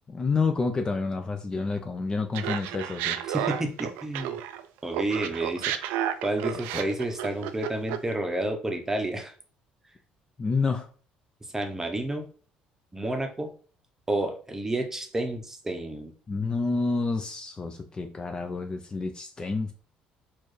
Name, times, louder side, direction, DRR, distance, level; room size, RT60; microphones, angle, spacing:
voice 1, 0.1-3.2 6.7-6.8 10.4-10.9 16.3-19.7, left 4 dB, 25° left, 0.4 m, -29 dB
Laughter, 2.3-4.6 4.9-8.1, right 11 dB, 90° right, 0.3 m, -31 dB
voice 2, 3.3-4.4 4.8-5.7 6.2-9.3 11.5-12.2 12.9-13.5 14.1-16.1, right 1 dB, 15° right, 0.7 m, -30 dB
4.4 x 2.5 x 3.1 m
cardioid pair, 95°, 3 cm